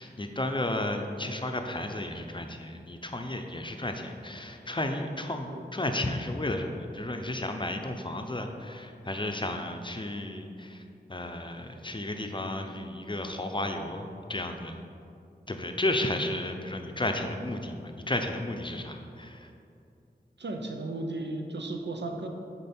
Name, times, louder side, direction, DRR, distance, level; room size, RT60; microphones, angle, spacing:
voice 1, 0.0-10.8 11.1-14.8 15.5-19.5, left 1 dB, 30° left, 4 dB, 0.6 m, -33 dB
voice 2, 20.4-22.3, right 2 dB, 90° right, 3 dB, 0.6 m, -35 dB
6.6 x 4.6 x 4.3 m, 2.6 s
wide cardioid pair, 45°, 18 cm